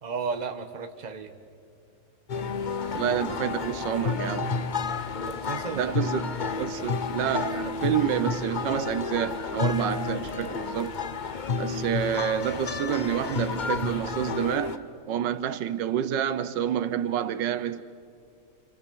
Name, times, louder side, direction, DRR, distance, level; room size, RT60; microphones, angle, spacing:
voice 1, 0.0-1.3 5.2-6.2, right 5 dB, 25° right, 1.2 m, -34 dB
sound 1, 2.3-14.8, left 5 dB, 55° left, 0.5 m, -31 dB
voice 2, 2.9-4.6 5.7-10.9 11.6-17.8, right 10 dB, 85° right, 1.5 m, -28 dB
29.0 x 26.0 x 7.0 m
omnidirectional pair, 1.9 m